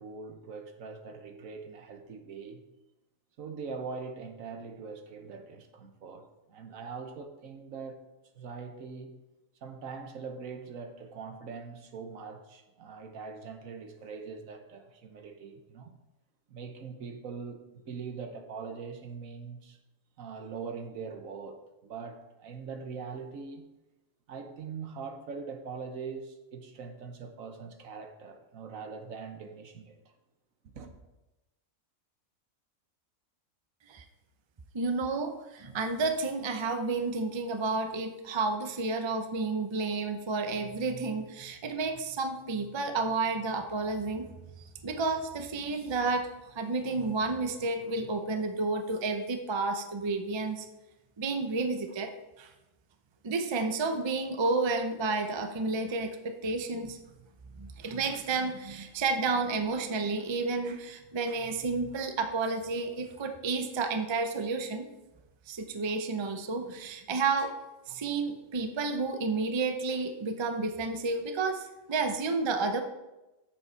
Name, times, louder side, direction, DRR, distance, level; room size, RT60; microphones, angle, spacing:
voice 1, 0.0-2.6 3.4-8.0 8.3-9.2 9.6-15.9 16.5-19.8 20.2-23.7 24.3-30.0 30.6-31.0, right 5 dB, 75° right, 1.3 m, -42 dB
voice 2, 34.7-44.3 44.8-50.7 51.2-52.1 52.4-52.5 53.2-57.0 57.6-64.9 65.5-67.5 67.9-72.8, right 3 dB, 30° right, 0.5 m, -31 dB
8.2 x 7.1 x 4.5 m
omnidirectional pair, 1.4 m